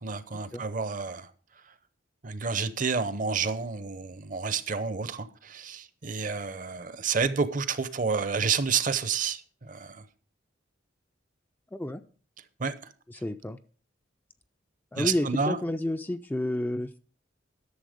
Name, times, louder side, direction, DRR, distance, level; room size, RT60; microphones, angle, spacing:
voice 1, 0.0-1.3 2.2-10.0 12.6-12.7 15.0-15.6, right 5 dB, 45° right, 0.7 m, -29 dB
voice 2, 11.7-12.0 13.1-13.6 14.9-17.0, left 1 dB, 10° left, 0.4 m, -30 dB
11.5 x 6.9 x 5.0 m
head